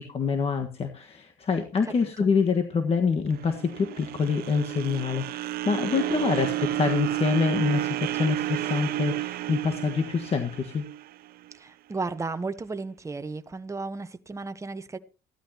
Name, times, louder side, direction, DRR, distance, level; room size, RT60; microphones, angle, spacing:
voice 1, 0.1-10.8, left 5 dB, 35° left, 1.5 m, -26 dB
sound 1, 3.3-11.5, right 14 dB, 65° right, 0.5 m, -31 dB
voice 2, 11.5-15.0, right 3 dB, 15° right, 1.0 m, -34 dB
15.5 x 12.5 x 2.9 m
cardioid pair, 110°, 17 cm